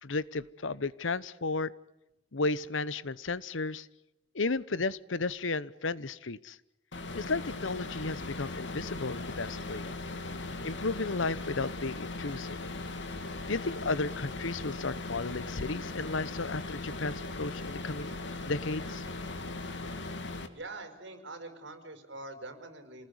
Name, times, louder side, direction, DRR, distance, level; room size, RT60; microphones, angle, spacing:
voice 1, 0.0-1.7 2.3-3.9 4.3-6.6 7.1-9.9 10.6-12.6 13.5-18.1 18.5-19.0, left 3 dB, 80° left, 19 dB, 1.0 m, -33 dB
sound 1, 6.9-20.5, left 2 dB, 65° left, 2.6 m, -39 dB
voice 2, 20.5-23.1, right 2 dB, 65° right, 7 dB, 5.2 m, -44 dB
28.0 x 20.0 x 9.7 m, 0.94 s
head